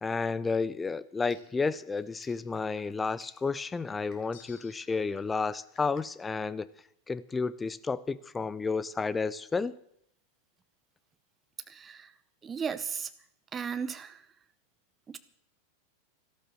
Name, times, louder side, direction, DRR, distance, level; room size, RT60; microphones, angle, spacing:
voice 1, 0.0-6.7 7.1-9.8, left 4 dB, 15° left, 18 dB, 0.6 m, -31 dB
sound 1, 1.1-6.2, left 5 dB, 35° left, 4.1 m, -61 dB
sound 2, 4.3-5.3, left 9 dB, 50° left, 1.5 m, -56 dB
voice 2, 11.7-12.1 12.4-13.1 13.5-14.3 15.1-15.2, right 6 dB, 20° right, 12 dB, 0.7 m, -35 dB
14.0 x 12.5 x 7.5 m, 0.70 s
figure-of-eight pair, 90°, 0 cm